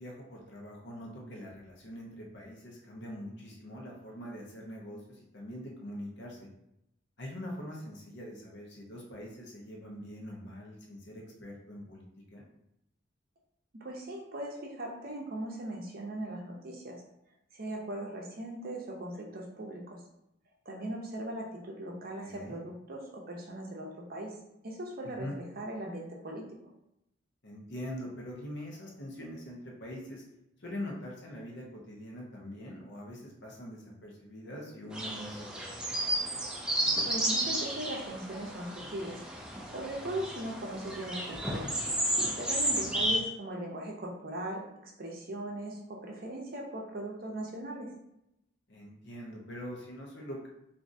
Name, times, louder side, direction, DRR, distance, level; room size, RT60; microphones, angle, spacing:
voice 1, 0.0-5.0 5.3-6.5 7.2-12.0 12.3-12.4 22.2-22.6 25.0-25.4 27.4-30.2 30.6-35.7 48.7-50.5, equal, 60° left, -2 dB, 0.8 m, -43 dB
voice 2, 13.8-17.0 17.5-20.0 20.7-24.3 24.6-26.4 37.0-39.2 39.7-41.7 42.3-47.9, right 1 dB, 50° right, -1 dB, 0.6 m, -39 dB
sound 1, 34.9-43.2, right 1 dB, 5° right, 0.4 m, -32 dB
3.6 x 2.6 x 2.6 m, 0.82 s
head